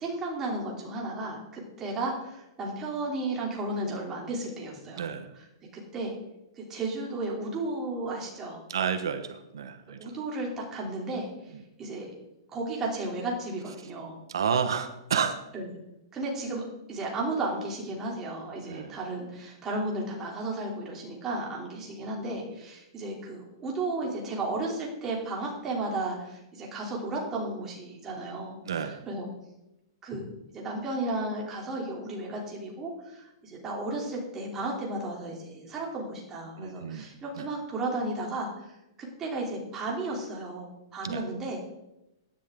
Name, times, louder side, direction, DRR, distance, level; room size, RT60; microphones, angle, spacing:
voice 1, 0.0-5.1 5.3-5.5 5.7-6.1 6.6-8.6 10.0-11.3 11.8-12.1 12.5-14.2 15.5-15.7 16.1-16.6 16.9-29.3 30.0-30.3 30.5-38.6 39.0-41.7, right 2 dB, 15° right, -2 dB, 3.1 m, -34 dB
voice 2, 5.0-5.3 8.7-10.1 14.3-15.4 18.6-18.9 28.7-29.0 36.6-37.1 37.4-37.5 41.0-41.2, right 7 dB, 85° right, 9 dB, 1.1 m, -30 dB
16.0 x 10.0 x 3.8 m, 0.89 s
hypercardioid pair, 160°, 2 cm